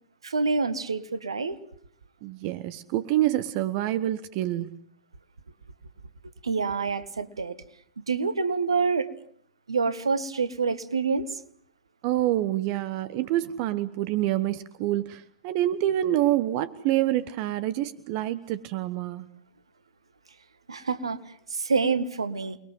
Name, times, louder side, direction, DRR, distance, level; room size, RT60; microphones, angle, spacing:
voice 1, 0.2-1.6 6.4-7.6 8.1-9.1 9.7-11.3 20.7-21.2 21.5-22.6, right 4 dB, 80° right, 1.8 m, -27 dB
voice 2, 2.2-4.8 12.0-19.3, right 14 dB, 45° right, 1.2 m, -27 dB
29.0 x 21.5 x 7.7 m
figure-of-eight pair, 95°, 3 cm